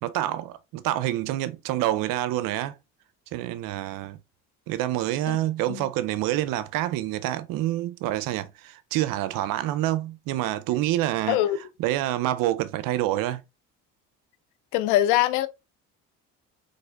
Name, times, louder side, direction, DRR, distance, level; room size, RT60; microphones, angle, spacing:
voice 1, 0.0-2.8 3.3-4.2 4.7-11.4 11.8-13.4, right 14 dB, 70° right, 0.5 m, -27 dB
voice 2, 14.7-15.5, left 14 dB, 90° left, 0.5 m, -22 dB
4.0 x 3.2 x 2.3 m
supercardioid pair, 75°, 35 cm